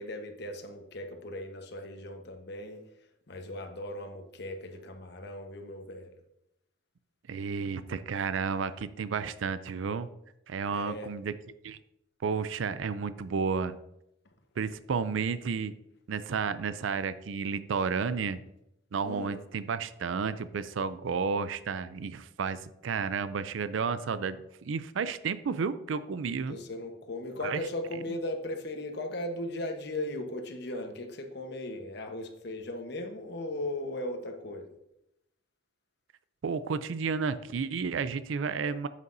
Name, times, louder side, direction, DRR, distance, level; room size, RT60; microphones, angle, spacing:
voice 1, 0.0-2.8 3.3-6.1 10.7-11.1 14.6-14.7 19.0-19.4 26.5-34.7, left 1 dB, 60° left, 5 dB, 1.1 m, -37 dB
voice 2, 7.3-10.1 10.5-11.3 11.6-11.8 12.2-13.7 14.6-15.7 16.1-18.4 18.9-26.6 27.4-27.6 36.4-38.9, right 5 dB, 85° right, 14 dB, 0.4 m, -32 dB
9.3 x 8.2 x 2.6 m, 0.83 s
head